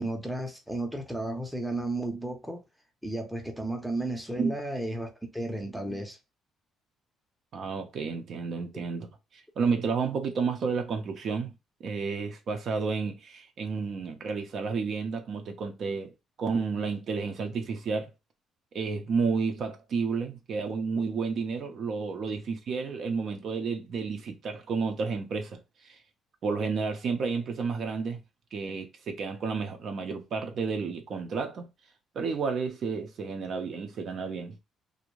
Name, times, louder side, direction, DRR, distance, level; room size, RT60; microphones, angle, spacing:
voice 1, 0.0-2.6 3.0-6.2 22.3-22.4, right 1 dB, ahead, 0.6 m, -33 dB
voice 2, 7.5-9.1 9.3-11.5 11.8-16.1 16.4-18.1 18.7-26.0 26.4-28.2 28.5-31.7 32.2-34.6, right 5 dB, 55° right, 0.5 m, -31 dB
2.5 x 2.1 x 3.0 m
cardioid pair, 125°, 0 cm